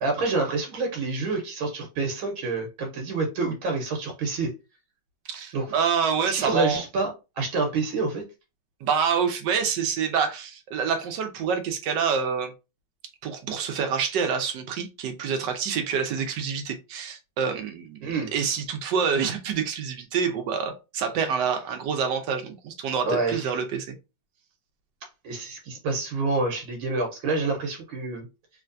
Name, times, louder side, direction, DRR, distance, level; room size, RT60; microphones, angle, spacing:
voice 1, 0.0-4.5 5.5-5.7 6.3-7.1 7.4-8.3 18.0-18.3 23.1-23.5 25.2-28.3, right 3 dB, 85° right, 1.8 m, -27 dB
voice 2, 5.3-6.8 8.8-12.5 13.2-23.9, right 6 dB, 70° right, 1.2 m, -27 dB
3.4 x 3.2 x 2.5 m
omnidirectional pair, 2.2 m